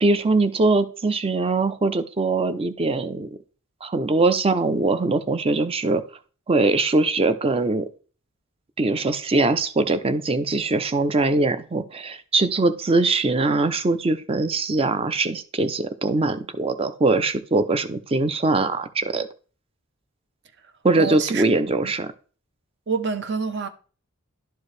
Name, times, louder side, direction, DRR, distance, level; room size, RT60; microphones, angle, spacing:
voice 1, 0.0-3.3 3.8-6.0 6.5-7.9 8.8-19.3 20.8-22.1, right 3 dB, 25° right, 0.5 m, -22 dB
voice 2, 21.0-21.4 22.9-23.7, right 5 dB, 55° right, 0.8 m, -26 dB
11.5 x 4.6 x 3.2 m
head